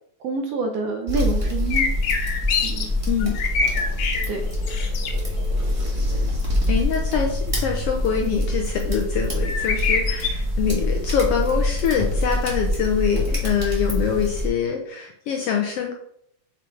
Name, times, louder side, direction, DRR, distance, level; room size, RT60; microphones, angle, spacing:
voice 1, 0.2-1.9 2.6-2.9 4.3-4.4, right 3 dB, 70° right, 3 dB, 1.6 m, -27 dB
sound 1, 1.1-14.5, left 1 dB, 40° right, 0.4 m, -25 dB
sound 2, 1.7-2.8 3.2-4.3 4.6-5.1 9.4-10.3, left 5 dB, 90° left, 2.5 m, -24 dB
voice 2, 6.7-15.9, left 7 dB, 75° left, 2 dB, 1.5 m, -24 dB
6.2 x 3.8 x 4.5 m, 0.67 s
omnidirectional pair, 3.4 m